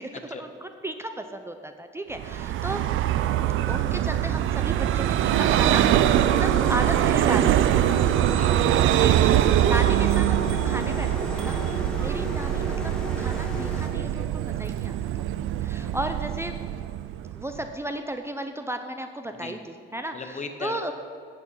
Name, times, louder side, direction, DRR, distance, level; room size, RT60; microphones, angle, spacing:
voice 1, 0.0-2.9 3.7-8.0 9.0-15.3 15.6-16.5 17.3-20.9, right 1 dB, 15° right, 7 dB, 0.6 m, -35 dB
Vehicle, 2.2-17.6, right 12 dB, 80° right, 0.4 m, -23 dB
sound 1, 5.3-13.9, equal, 5° left, 1.9 m, -34 dB
voice 2, 8.2-8.9 19.3-19.5 20.1-20.9, left 4 dB, 35° left, 6 dB, 1.1 m, -38 dB
9.2 x 8.3 x 5.6 m, 2.2 s
cardioid pair, 90°, 20 cm